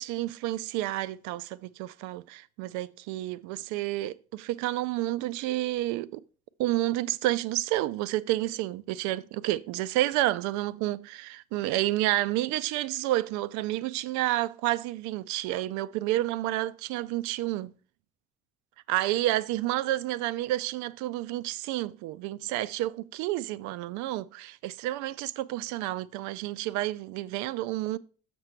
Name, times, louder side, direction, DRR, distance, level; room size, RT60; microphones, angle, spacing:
voice 1, 0.0-6.2 6.6-17.7 18.9-28.0, right 15 dB, 65° right, 0.4 m, -30 dB
6.6 x 6.0 x 4.5 m
hypercardioid pair, 55°, 32 cm